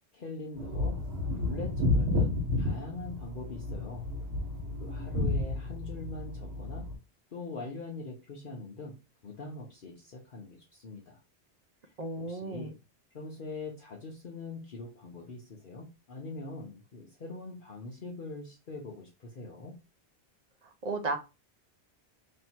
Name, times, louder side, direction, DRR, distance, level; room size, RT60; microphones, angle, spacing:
voice 1, 0.1-1.0 1.3-4.1 4.8-6.9 7.3-9.0 9.2-11.2 11.8-12.7 13.1-19.8, left 3 dB, 55° left, -2 dB, 0.9 m, -42 dB
sound 1, 0.6-6.9, left 2 dB, 85° right, 1.6 m, -31 dB
voice 2, 12.0-12.7 20.6-21.2, right 3 dB, 45° right, 5 dB, 0.6 m, -34 dB
3.3 x 2.7 x 4.3 m, 0.28 s
omnidirectional pair, 1.1 m